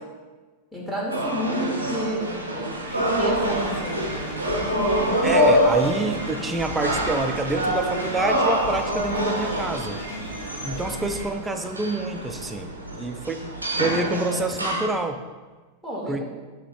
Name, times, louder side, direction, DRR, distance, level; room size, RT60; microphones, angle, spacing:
voice 1, 0.7-4.3 4.5-5.2 15.8-16.2, equal, 5° left, -5 dB, 1.0 m, -31 dB
sound 1, 1.1-14.9, equal, 80° right, 0.5 m, -26 dB
sound 2, 2.9-11.3, equal, 85° left, 0.9 m, -36 dB
voice 2, 5.2-10.0 10.6-12.7 13.0-13.5 13.8-15.2 16.1-16.2, right 2 dB, 10° right, 6 dB, 0.3 m, -27 dB
3.7 x 2.8 x 4.8 m, 1.3 s
figure-of-eight pair, 90°, 0 cm